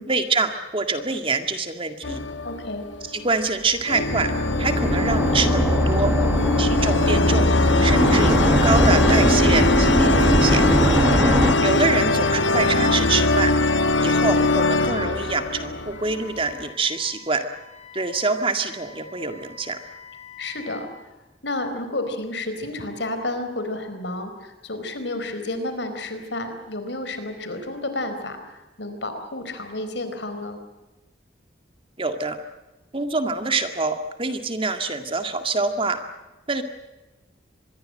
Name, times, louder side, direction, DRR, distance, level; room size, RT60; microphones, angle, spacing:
voice 1, 0.1-2.2 3.1-4.3 4.6-6.1 6.6-7.5 7.8-10.6 11.6-13.5 14.0-17.4 17.9-19.8 32.0-32.4 32.9-36.0 36.5-36.6, right 3 dB, 30° right, 7 dB, 2.0 m, -25 dB
sound 1, 2.0-3.2 3.9-16.5, left 2 dB, 90° left, 1.6 m, -21 dB
voice 2, 2.4-2.9 20.4-20.9 21.4-30.6, left 2 dB, 70° left, 8 dB, 4.5 m, -31 dB
sound 2, 4.0-11.5, equal, 10° right, 1.3 m, -21 dB
Wind instrument woodwind instrument, 15.9-20.9, left 6 dB, 35° left, 5.4 m, -46 dB
25.5 x 21.5 x 7.8 m, 1.1 s
head